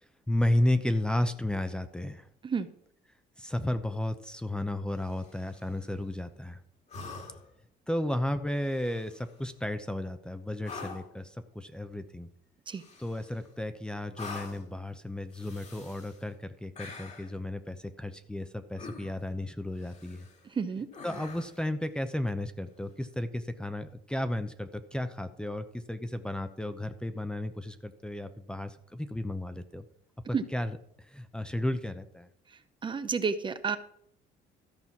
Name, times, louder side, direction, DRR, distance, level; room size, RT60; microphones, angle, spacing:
voice 1, 0.3-2.3 3.4-6.6 7.9-12.3 13.0-20.3 21.0-29.8 30.5-30.8 31.1-32.3, left 1 dB, 5° left, 10 dB, 0.7 m, -33 dB
sound 1, 5.0-5.7 6.9-7.6 8.6-9.3 10.6-11.2 12.7-13.5 14.1-14.7 15.3-16.2 16.8-17.4 18.8-19.3 19.8-20.4 20.9-21.7 23.5-23.6, left 4 dB, 40° left, 2.1 m, -45 dB
voice 2, 20.4-20.9 30.3-30.4 32.8-33.8, right 5 dB, 30° right, 11 dB, 0.7 m, -30 dB
13.5 x 5.5 x 5.9 m, 0.67 s
cardioid pair, 110°, 17 cm